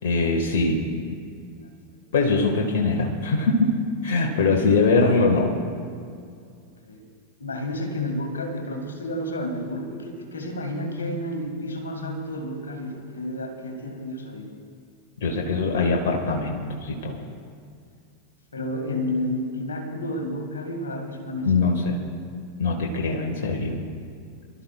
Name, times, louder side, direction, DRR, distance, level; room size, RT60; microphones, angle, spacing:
voice 1, 0.0-0.8 2.1-5.5 15.2-17.2 21.4-22.0 22.6-23.8, left 3 dB, 55° left, 1 dB, 1.7 m, -22 dB
voice 2, 7.4-14.5 18.5-21.8, left 1 dB, 70° left, 4 dB, 2.1 m, -31 dB
28.0 x 12.5 x 2.4 m, 2.3 s
figure-of-eight pair, 90°, 0 cm